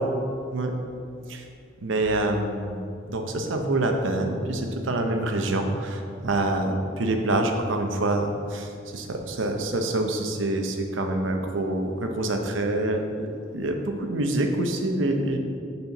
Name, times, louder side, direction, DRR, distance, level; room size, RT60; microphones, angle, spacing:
voice 1, 1.8-13.3 13.5-15.4, right 2 dB, 80° right, 4 dB, 0.8 m, -26 dB
6.7 x 4.4 x 5.7 m, 2.4 s
head